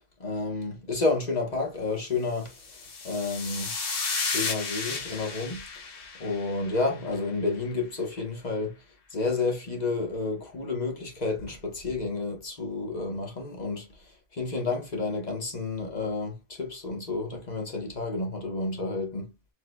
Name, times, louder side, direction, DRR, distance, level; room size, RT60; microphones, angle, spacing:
voice 1, 0.2-2.5 3.0-3.7 4.2-5.6 6.2-8.8 9.1-13.9 14.3-19.3, left 3 dB, 35° left, 1.2 m, -30 dB
sound 1, 2.5-7.0, left 4 dB, 75° left, 1.5 m, -33 dB
4.5 x 3.7 x 2.2 m
omnidirectional pair, 1.3 m